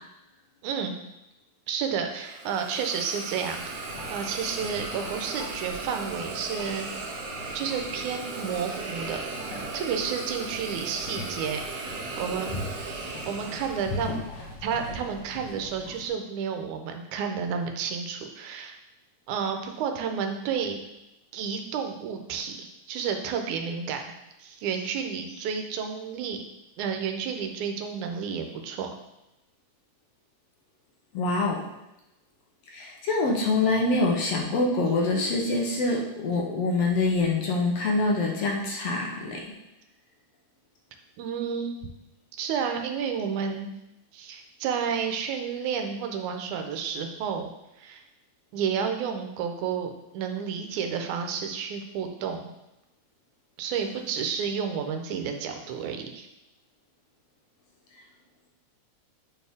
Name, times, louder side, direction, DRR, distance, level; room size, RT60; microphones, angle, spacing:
voice 1, 0.6-0.9 1.7-7.1 7.5-9.2 9.7-12.6 13.3-14.2 14.6-18.8 19.3-20.8 21.3-24.0 24.4-26.4 26.8-28.9 41.2-41.8 42.4-43.7 44.1-47.5 47.8-48.0 48.5-52.5 53.6-56.3, right 6 dB, 85° right, 5 dB, 2.2 m, -31 dB
Hiss, 2.2-14.3, right 3 dB, 70° right, 1.9 m, -37 dB
sound 1, 3.5-16.1, left 2 dB, 85° left, 2.7 m, -41 dB
voice 2, 31.1-31.6 32.7-39.4, left 2 dB, 65° left, -1 dB, 1.8 m, -25 dB
8.6 x 4.5 x 3.5 m, 0.92 s
omnidirectional pair, 3.4 m